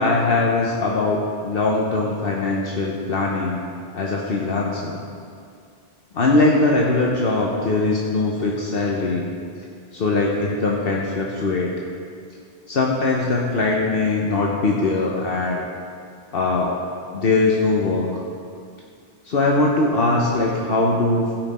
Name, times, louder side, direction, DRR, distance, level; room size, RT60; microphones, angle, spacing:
voice 1, 0.0-3.6 3.9-5.0 6.1-9.3 9.9-11.7 12.7-15.6 16.3-16.7 17.1-18.1 19.2-21.3, left 3 dB, 65° left, -2 dB, 1.1 m, -21 dB
16.0 x 5.7 x 4.2 m, 2.3 s
omnidirectional pair, 1.1 m